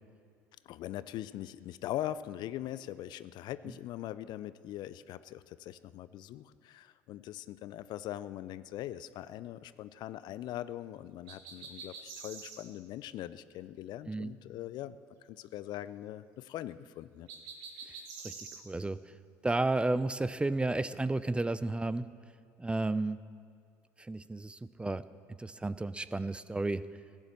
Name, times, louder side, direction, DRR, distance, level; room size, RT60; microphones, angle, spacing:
voice 1, 0.6-15.0 15.3-17.3, left 13 dB, 55° left, 15 dB, 0.5 m, -41 dB
sound 1, 11.3-12.6 17.3-18.6, right 5 dB, 70° right, 2.0 m, -46 dB
voice 2, 18.2-19.0 19.4-22.1 22.6-23.2 24.0-25.0 25.4-26.8, right 2 dB, 10° right, 15 dB, 0.5 m, -32 dB
15.5 x 9.8 x 7.4 m, 2.3 s
hypercardioid pair, 70°, 9 cm